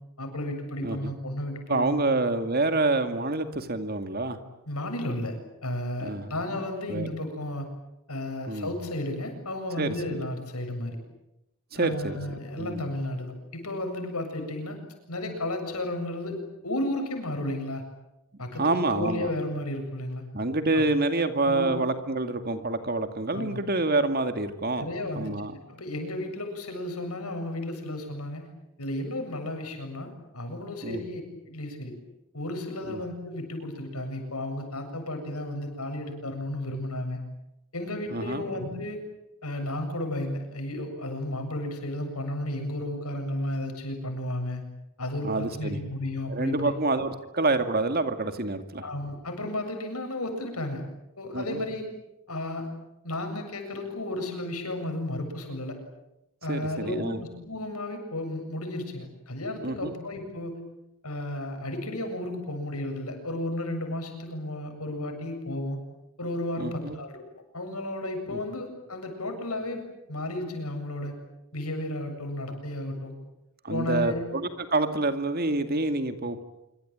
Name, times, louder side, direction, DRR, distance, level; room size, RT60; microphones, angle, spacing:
voice 1, 0.2-2.2 4.7-7.7 8.1-11.0 11.7-14.8 15.1-17.8 18.4-20.2 20.7-20.8 21.5-21.7 23.3-23.6 24.8-25.3 25.7-28.5 28.8-31.9 32.3-37.2 37.7-39.0 39.4-44.6 45.0-46.7 48.8-50.8 51.2-51.9 52.3-52.7 53.0-55.8 56.4-60.6 61.0-65.8 66.2-67.2 67.5-69.8 70.1-71.1 71.5-73.1 73.7-74.2, left 1 dB, 90° left, 5 dB, 7.7 m, -33 dB
voice 2, 0.8-1.1 1.7-4.4 6.0-6.3 6.9-7.1 8.5-8.7 9.8-9.9 11.7-12.2 12.6-12.8 18.6-19.3 20.3-24.9 25.2-25.6 30.8-31.1 32.9-33.0 38.1-38.5 45.2-45.8 46.3-48.8 51.3-51.6 56.5-57.2 59.6-59.9 66.6-67.0 68.3-68.4 73.6-76.4, right 2 dB, 45° right, 8 dB, 2.3 m, -27 dB
26.5 x 24.5 x 8.9 m, 0.88 s
head